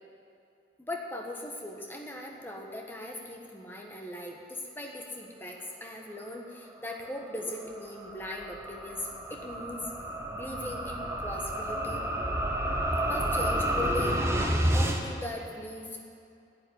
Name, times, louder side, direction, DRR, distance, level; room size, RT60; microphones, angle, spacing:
voice 1, 0.8-9.9 10.3-12.0 13.1-14.3 14.7-16.0, left 1 dB, 10° left, 1 dB, 1.3 m, -39 dB
sound 1, 7.2-15.0, right 1 dB, 15° right, 1.0 m, -30 dB
11.0 x 8.9 x 9.4 m, 2.5 s
head